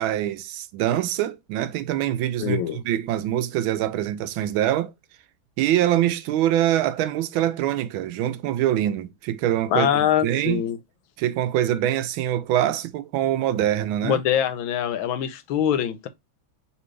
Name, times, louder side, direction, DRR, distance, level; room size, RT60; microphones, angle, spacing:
voice 1, 0.0-2.6 2.8-4.9 5.6-10.6 11.2-14.2, right 12 dB, 85° right, 1.4 m, -24 dB
voice 2, 2.4-2.8 9.7-10.8 14.0-16.1, left 10 dB, 80° left, 1.5 m, -23 dB
4.2 x 3.0 x 3.1 m
omnidirectional pair, 2.2 m